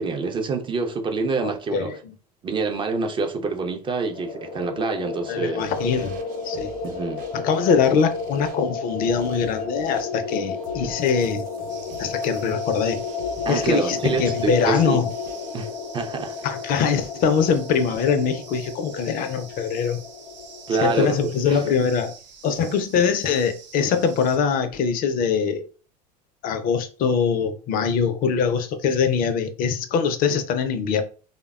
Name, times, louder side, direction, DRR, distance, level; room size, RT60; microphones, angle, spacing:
voice 1, 0.0-2.0 2.4-5.6 6.8-7.2 13.5-15.0 15.5-16.3 20.7-21.1 21.5-21.6, right 4 dB, 25° right, 0.4 m, -26 dB
voice 2, 1.4-2.0 5.3-6.2 6.4-6.7 7.3-11.4 12.0-13.0 13.5-15.1 16.4-20.0 20.8-22.1 22.4-25.6 26.4-31.0, left 6 dB, 45° left, 0.5 m, -23 dB
sound 1, 4.0-20.9, left 5 dB, 80° left, 0.7 m, -32 dB
sound 2, 5.6-15.7, right 2 dB, 40° right, 0.8 m, -45 dB
sound 3, 11.7-24.4, right 6 dB, 80° right, 0.8 m, -46 dB
3.2 x 2.1 x 2.3 m
hypercardioid pair, 80°, 21 cm